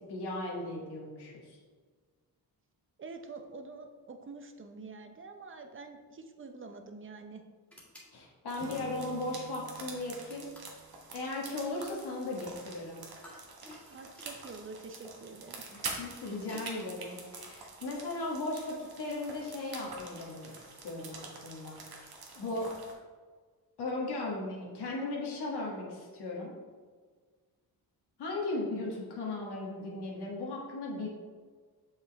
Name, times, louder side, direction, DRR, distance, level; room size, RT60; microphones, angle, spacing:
voice 1, 0.1-1.6 8.1-10.5 11.1-13.0 15.7-22.7 23.8-26.5 28.2-31.1, left 2 dB, 80° left, -3 dB, 1.6 m, -37 dB
voice 2, 3.0-7.4 13.9-15.6, right 4 dB, 30° right, 6 dB, 0.7 m, -46 dB
sound 1, 7.7-8.1 10.3-10.8 13.2-14.6 15.7-16.7, left 1 dB, 5° left, 1.8 m, -53 dB
sound 2, 8.5-22.9, right 3 dB, 65° right, 1.3 m, -46 dB
Acoustic guitar / Strum, 8.6-11.7, right 4 dB, 85° right, 1.1 m, -50 dB
6.8 x 5.5 x 3.5 m, 1.5 s
wide cardioid pair, 125°, 39 cm